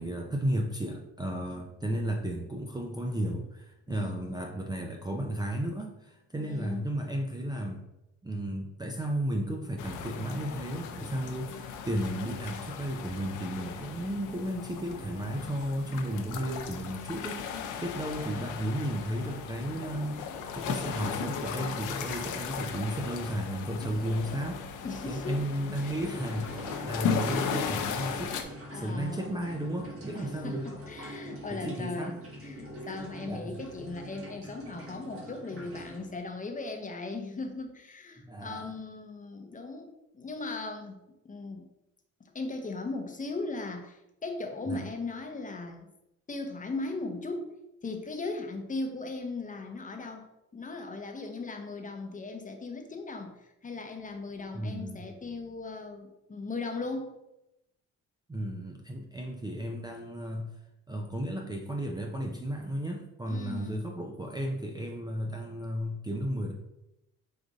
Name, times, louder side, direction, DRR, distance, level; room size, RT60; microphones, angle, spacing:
voice 1, 0.0-7.8 8.2-24.6 25.1-28.4 28.7-30.7 31.5-32.2 33.3-33.5 38.2-38.7 44.7-44.8 54.5-55.1 58.3-60.5 60.9-66.5, right 1 dB, 15° right, 2 dB, 0.4 m, -34 dB
voice 2, 3.9-4.5 6.4-6.9 24.8-25.4 25.8-26.2 27.1-27.7 28.7-29.5 30.1-41.7 42.3-45.9 46.3-47.5 47.8-50.2 50.5-57.1 63.3-63.9, left 3 dB, 25° left, 4 dB, 0.7 m, -38 dB
sound 1, 9.8-28.4, left 6 dB, 85° left, 0.5 m, -37 dB
sound 2, 25.7-36.2, right 1 dB, 45° right, 1.5 m, -44 dB
4.8 x 2.5 x 3.9 m, 0.89 s
cardioid pair, 90°, 30 cm